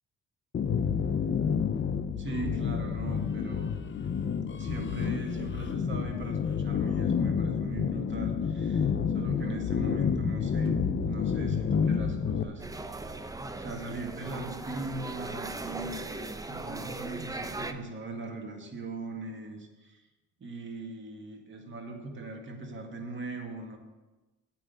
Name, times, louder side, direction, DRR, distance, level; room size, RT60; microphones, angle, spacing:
sound 1, 0.5-12.4, left 6 dB, 40° left, 0.7 m, -29 dB
voice 1, 2.2-3.9 4.2-4.3 4.6-10.7 11.0-13.1 13.6-20.1 20.4-23.8, right 2 dB, 40° right, 2 dB, 2.0 m, -40 dB
sound 2, 10.7-15.7, right 9 dB, 70° right, 1.0 m, -46 dB
sound 3, 12.6-17.7, right 2 dB, 10° right, 0.6 m, -38 dB
8.7 x 5.9 x 8.1 m, 1.1 s
cardioid pair, 90°, 30 cm